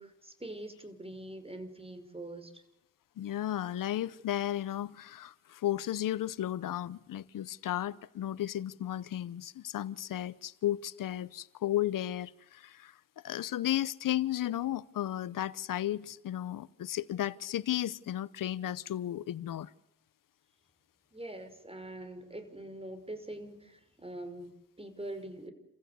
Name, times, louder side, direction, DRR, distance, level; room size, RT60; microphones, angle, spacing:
voice 1, 0.0-2.6 21.1-25.5, right 1 dB, 15° right, 5.6 m, -44 dB
voice 2, 3.2-12.9 13.2-19.7, left 12 dB, 80° left, 0.9 m, -34 dB
28.5 x 15.5 x 8.2 m
supercardioid pair, 45°, 32 cm